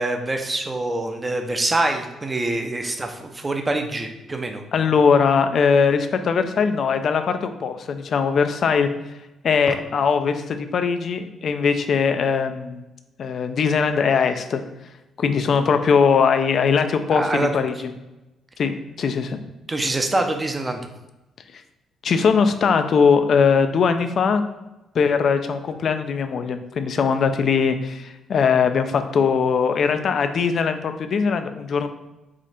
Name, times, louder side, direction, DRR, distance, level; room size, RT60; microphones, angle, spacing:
voice 1, 0.0-4.6 17.1-17.5 19.7-20.8, right 2 dB, 20° right, 4 dB, 0.6 m, -25 dB
voice 2, 4.7-8.9 9.4-12.8 13.2-14.6 15.2-17.9 18.6-19.4 22.0-24.4 24.9-31.9, left 6 dB, 55° left, 8 dB, 0.4 m, -20 dB
4.9 x 2.4 x 4.2 m, 0.99 s
cardioid pair, 90°, 0 cm